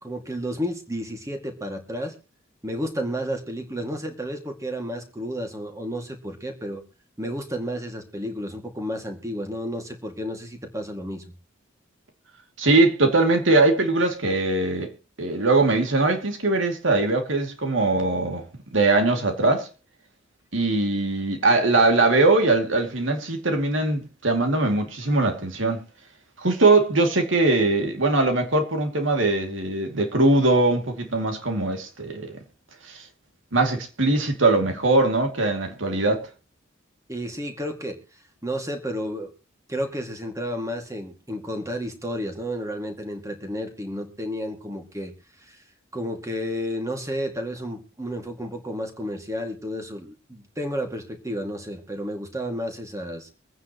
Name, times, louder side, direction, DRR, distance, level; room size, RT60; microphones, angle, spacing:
voice 1, 0.0-2.2 2.6-6.8 7.2-11.2 37.1-38.0 38.4-39.3 39.7-45.1 45.4-45.6 45.9-53.3, equal, 15° right, 2.2 m, -31 dB
voice 2, 12.6-14.9 15.2-18.4 18.7-19.7 20.5-25.8 26.4-32.4 32.9-33.0 33.5-36.2, right 2 dB, 80° right, 2.6 m, -21 dB
24.5 x 9.5 x 3.0 m
head